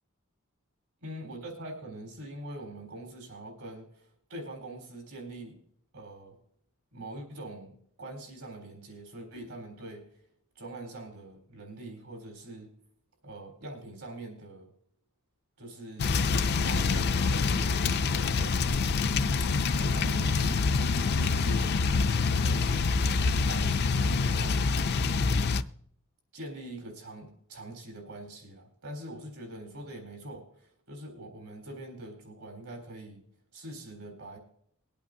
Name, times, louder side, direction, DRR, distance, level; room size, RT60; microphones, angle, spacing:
voice 1, 1.0-5.6 5.9-6.4 6.9-10.0 10.6-12.7 13.2-14.7 15.6-16.2 16.6-17.8 18.1-18.8 19.2-20.8 21.1-23.0 23.5-25.0 26.3-33.2 33.5-34.4, right 1 dB, 75° right, 1 dB, 4.0 m, -43 dB
sound 1, 16.0-25.6, left 4 dB, 50° left, 0.4 m, -26 dB
22.0 x 8.6 x 2.7 m, 0.65 s
head